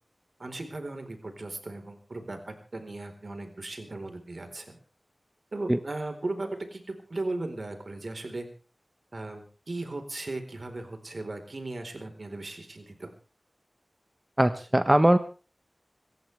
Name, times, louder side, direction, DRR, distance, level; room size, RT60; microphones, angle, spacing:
voice 1, 0.4-4.8 5.5-6.8 7.1-8.5 9.1-13.1, right 2 dB, 60° right, 6 dB, 4.3 m, -37 dB
voice 2, 14.4-15.2, right 1 dB, 20° right, 10 dB, 1.1 m, -20 dB
27.5 x 14.5 x 3.5 m, 0.37 s
wide cardioid pair, 60°, 0 cm